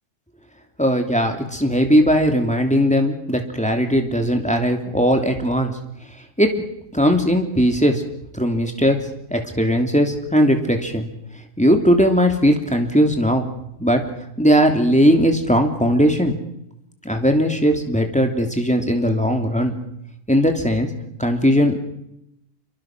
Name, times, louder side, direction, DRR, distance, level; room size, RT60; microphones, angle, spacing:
voice 1, 0.8-5.7 6.4-6.7 6.9-8.0 8.3-9.0 9.3-11.1 11.6-13.5 13.8-14.0 14.4-16.4 17.0-19.8 20.3-20.9 21.2-21.8, equal, 5° left, 4 dB, 2.9 m, -18 dB
26.5 x 24.0 x 6.1 m, 0.80 s
omnidirectional pair, 1.7 m